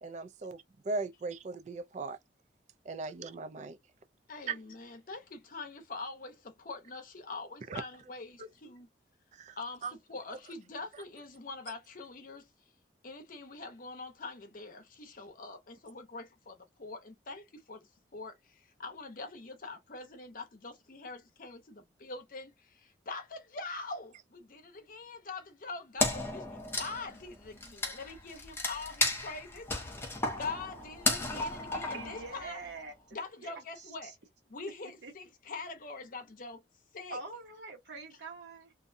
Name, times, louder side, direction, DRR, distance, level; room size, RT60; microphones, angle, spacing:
voice 1, 0.0-2.2 2.9-3.8 4.5-4.6 7.7-7.8 8.4-8.5 9.4-9.6 9.8-9.9, right 3 dB, 40° right, 0.3 m, -38 dB
voice 2, 4.3-8.9 9.6-9.8 10.1-12.5 13.0-32.6 33.1-34.1 34.5-36.6 36.9-37.2, left 3 dB, 50° left, 0.7 m, -44 dB
Wood, 26.0-32.7, left 2 dB, 15° left, 0.6 m, -34 dB
voice 3, 31.9-34.1 35.0-35.1 37.1-38.7, right 3 dB, 70° right, 1.0 m, -45 dB
2.6 x 2.2 x 2.5 m
head